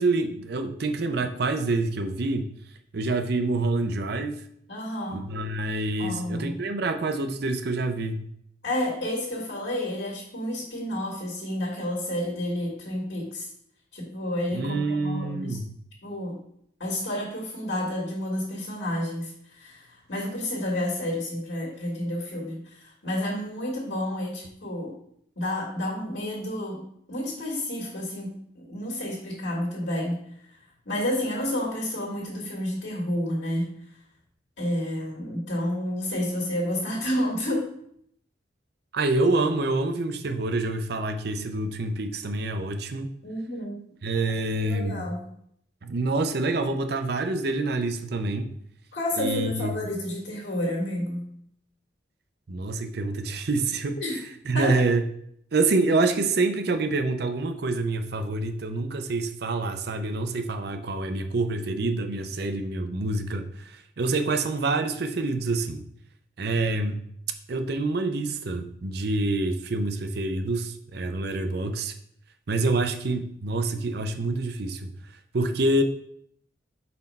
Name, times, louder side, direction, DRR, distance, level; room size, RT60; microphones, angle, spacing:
voice 1, 0.0-2.5 2.9-4.4 5.1-8.2 14.5-15.7 38.9-43.1 44.0-45.0 45.8-48.5 49.2-49.8 52.5-54.0 54.5-55.0 55.5-65.9 66.4-67.0 67.5-71.9 72.5-74.9 75.3-75.8, right 2 dB, 60° right, 8 dB, 0.6 m, -27 dB
voice 2, 4.7-5.3 6.0-6.6 8.6-13.5 13.9-15.6 16.0-16.4 16.8-25.0 25.3-30.6 30.8-33.8 34.6-37.7 43.2-43.8 44.6-45.3 48.9-51.3 54.0-54.2 54.5-54.8, left 1 dB, 70° left, -3 dB, 1.6 m, -30 dB
4.3 x 4.3 x 5.4 m, 0.70 s
head